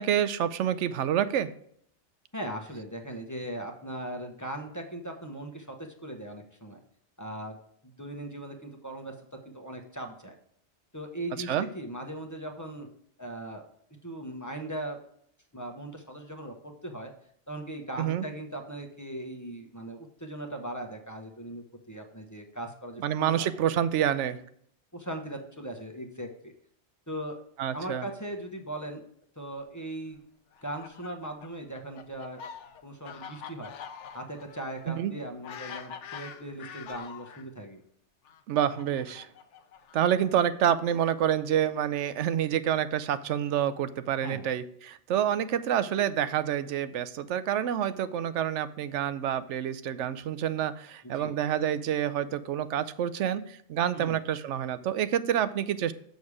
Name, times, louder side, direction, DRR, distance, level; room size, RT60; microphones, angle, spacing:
voice 1, 0.0-1.5 11.5-11.7 18.0-18.2 23.0-24.4 27.6-28.1 35.0-35.1 38.5-39.3 39.9-55.9, right 10 dB, 90° right, 13 dB, 0.9 m, -28 dB
voice 2, 2.3-5.7 6.0-6.8 7.2-7.6 7.8-9.1 9.5-10.3 10.9-12.9 13.2-13.6 14.0-15.0 15.5-17.1 17.5-23.5 24.9-26.5 27.1-27.4 27.7-29.0 29.4-30.2 30.6-32.4 32.8-33.7 34.1-37.8 44.2-44.5 51.0-51.3 53.9-54.2, right 1 dB, 15° left, 2 dB, 1.0 m, -39 dB
Fowl, 30.5-37.5 38.3-40.3, left 7 dB, 90° left, 1.1 m, -45 dB
7.0 x 6.5 x 4.8 m, 0.65 s
omnidirectional pair, 1.2 m